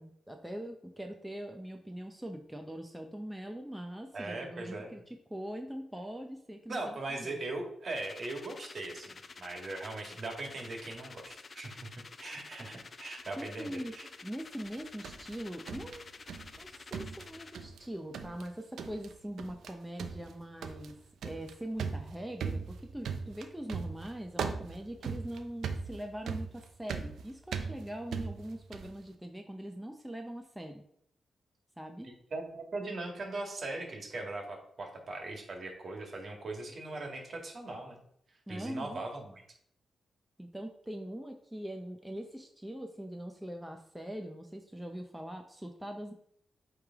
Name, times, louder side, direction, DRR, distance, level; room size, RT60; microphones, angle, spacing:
voice 1, 0.0-7.4 13.4-13.9 14.2-16.0 16.6-21.0 21.2-30.8 31.8-32.1 38.5-39.0 40.4-46.1, right 1 dB, 5° right, 3 dB, 0.7 m, -42 dB
voice 2, 4.1-4.9 6.7-11.9 12.2-14.1 32.3-38.0 38.5-39.4, right 2 dB, 55° right, 1 dB, 1.9 m, -40 dB
sound 1, 7.9-17.6, left 4 dB, 45° left, 0.4 m, -50 dB
sound 2, 14.6-16.6 16.9-17.9 18.1-18.5 18.8-19.1 19.4-19.7 20.0-29.0, right 5 dB, 80° right, 0.5 m, -39 dB
8.4 x 3.3 x 3.6 m, 0.68 s
cardioid pair, 70°, 0 cm